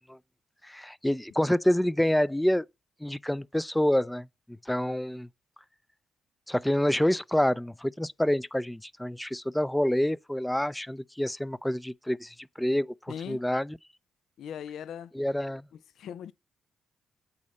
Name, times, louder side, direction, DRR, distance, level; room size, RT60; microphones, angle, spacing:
voice 1, 0.6-2.7 3.0-4.3 4.7-5.3 6.5-13.8 15.1-15.6, left 1 dB, 5° left, 0.4 m, -27 dB
voice 2, 13.1-13.4 14.4-15.1 16.0-16.3, left 8 dB, 75° left, 0.4 m, -39 dB
8.4 x 4.2 x 5.3 m
cardioid pair, 75°, 0 cm